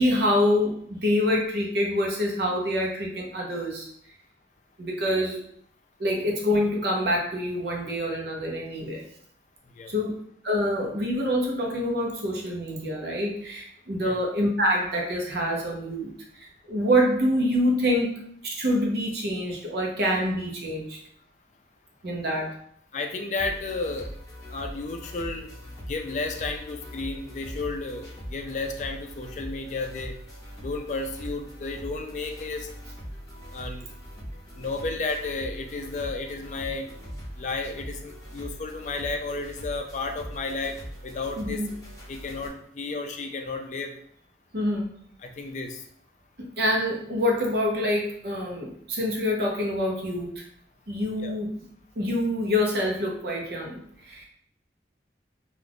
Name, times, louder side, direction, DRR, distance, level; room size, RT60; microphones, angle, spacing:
voice 1, 0.0-3.9 4.8-5.4 6.0-9.0 9.9-10.1 10.4-21.0 22.0-22.5 41.4-41.7 44.5-45.0 46.4-50.4 50.9-51.7 52.0-54.3, equal, 65° right, -1 dB, 0.8 m, -26 dB
voice 2, 22.9-24.1 24.5-25.5 25.8-30.2 30.6-32.7 33.5-33.9 34.6-36.9 37.4-40.8 41.0-41.6 42.1-43.9 45.2-45.8 51.2-51.4, left 3 dB, 45° left, 4 dB, 0.3 m, -32 dB
sound 1, 23.4-42.5, equal, 20° left, 0.7 m, -41 dB
2.4 x 2.3 x 3.4 m, 0.65 s
head